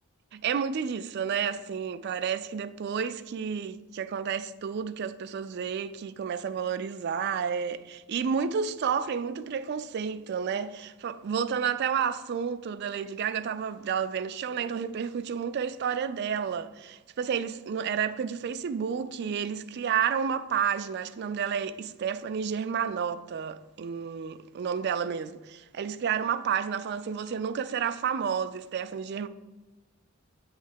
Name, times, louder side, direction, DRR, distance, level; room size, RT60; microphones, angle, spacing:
voice 1, 0.3-29.3, right 7 dB, 50° right, 0.3 m, -31 dB
8.0 x 3.2 x 5.6 m
head